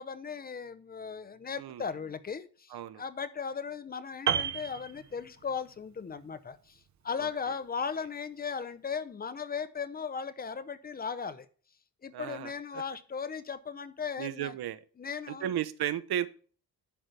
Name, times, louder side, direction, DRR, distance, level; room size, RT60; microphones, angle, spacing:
voice 1, 0.0-11.5 12.0-14.5 15.0-15.5, left 6 dB, 25° left, 0.8 m, -37 dB
voice 2, 2.7-3.0 7.2-7.3 12.1-12.8 14.2-14.8 15.3-16.3, right 11 dB, 85° right, 1.0 m, -34 dB
Piano, 4.3-5.7 6.0-6.2, right 8 dB, 50° right, 0.9 m, -32 dB
10.5 x 7.9 x 3.4 m
wide cardioid pair, 180°, 37 cm